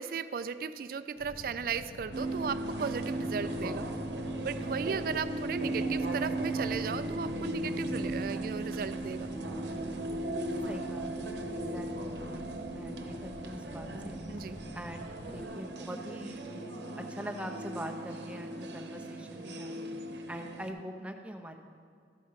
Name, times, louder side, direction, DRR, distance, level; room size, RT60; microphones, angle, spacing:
voice 1, 0.0-3.9 4.4-9.3 14.3-14.6, right 6 dB, 55° right, 12 dB, 0.3 m, -36 dB
Boat Water vehicle, 1.2-15.4, left 2 dB, 70° left, 0.6 m, -48 dB
sound 1, 2.1-20.7, right 2 dB, 80° right, 0.9 m, -37 dB
sound 2, 7.2-17.8, equal, 50° left, 0.9 m, -49 dB
voice 2, 10.7-14.2 14.7-16.6 16.9-19.8 20.3-21.6, equal, 5° right, 3 dB, 0.6 m, -43 dB
13.0 x 5.0 x 5.6 m, 2.3 s
head